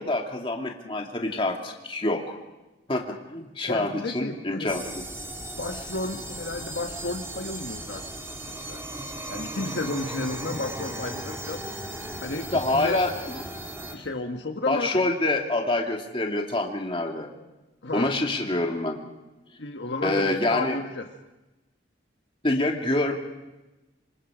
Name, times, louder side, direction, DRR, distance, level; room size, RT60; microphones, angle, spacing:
voice 1, 0.0-2.4 2.9-5.0 12.5-13.4 14.7-17.3 17.9-19.1 20.0-20.8 22.4-23.2, left 2 dB, 30° left, 1 dB, 2.5 m, -26 dB
voice 2, 3.6-4.7 5.5-8.0 8.7-8.8 9.3-11.6 12.2-13.0 13.9-15.0 17.8-18.1 19.6-21.1, left 2 dB, 70° left, 4 dB, 1.4 m, -32 dB
sound 1, 4.7-14.0, right 1 dB, 15° right, 2.3 m, -37 dB
26.5 x 26.0 x 5.1 m, 1.0 s
head